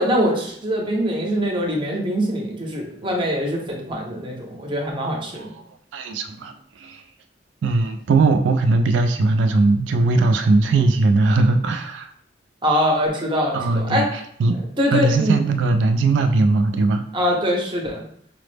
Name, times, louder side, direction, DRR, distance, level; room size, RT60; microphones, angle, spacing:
voice 1, 0.0-5.5 12.6-14.1 14.8-15.4 17.1-18.0, equal, 30° right, 0 dB, 0.7 m, -23 dB
voice 2, 5.9-6.5 6.8-7.0 7.6-12.1 13.5-14.1 14.4-14.6 14.9-17.0, right 3 dB, 80° right, 7 dB, 0.3 m, -19 dB
4.8 x 2.0 x 3.2 m, 0.66 s
head